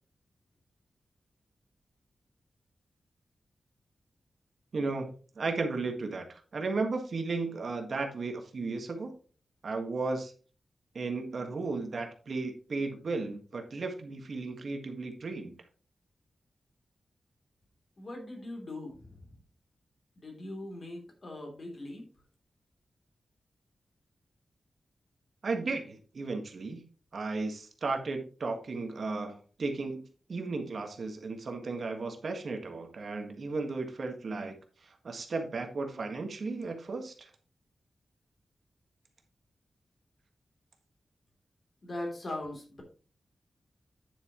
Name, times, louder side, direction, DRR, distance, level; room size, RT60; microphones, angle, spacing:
voice 1, 4.7-9.1 9.6-10.3 10.9-15.5 25.4-26.8 27.1-30.0 30.3-34.5 34.8-37.3, right 3 dB, 50° right, 4 dB, 1.6 m, -35 dB
voice 2, 18.0-19.3 20.2-22.0 41.8-42.8, left 1 dB, 40° left, 1 dB, 3.2 m, -40 dB
9.7 x 7.9 x 3.1 m, 0.38 s
wide cardioid pair, 180°, 0 cm